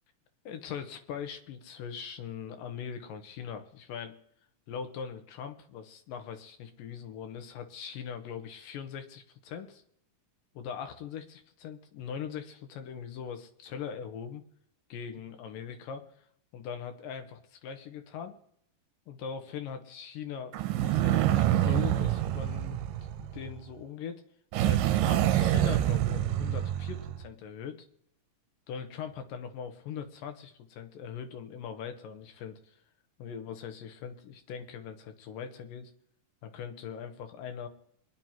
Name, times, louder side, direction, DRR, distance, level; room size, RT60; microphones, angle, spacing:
voice 1, 0.5-4.2 4.7-9.8 10.5-14.4 14.9-16.3 16.5-18.4 19.1-20.6 20.8-22.8 23.2-24.2 24.6-27.8 28.7-32.8 33.2-35.9 36.4-37.7, left 7 dB, 90° left, 6 dB, 2.7 m, -41 dB
sound 1, 20.5-23.6 24.5-27.2, right 13 dB, 85° right, 2.3 m, -27 dB
23.0 x 11.0 x 2.9 m, 0.68 s
omnidirectional pair, 3.9 m